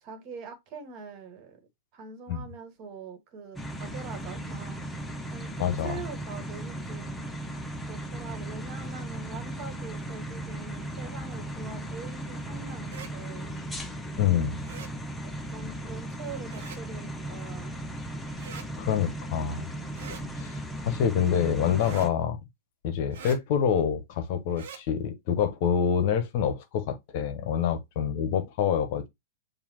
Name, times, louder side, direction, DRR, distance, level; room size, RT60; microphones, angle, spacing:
voice 1, 0.0-1.6 1.9-4.8 5.3-7.3 7.9-13.5 15.5-17.8, right 4 dB, 40° right, 1.6 m, -43 dB
sound 1, 3.6-22.1, right 1 dB, 5° left, 0.8 m, -37 dB
voice 2, 5.6-6.0 14.2-14.6 18.8-19.7 20.4-22.4 22.8-29.1, left 8 dB, 50° left, 0.9 m, -27 dB
sound 2, 12.8-13.1 14.6-14.9 16.5-16.8 18.4-18.7 19.9-20.2 21.8-22.1 23.1-23.4 24.5-24.8, right 7 dB, 60° right, 1.1 m, -43 dB
6.9 x 2.5 x 2.9 m
figure-of-eight pair, 105°, 0 cm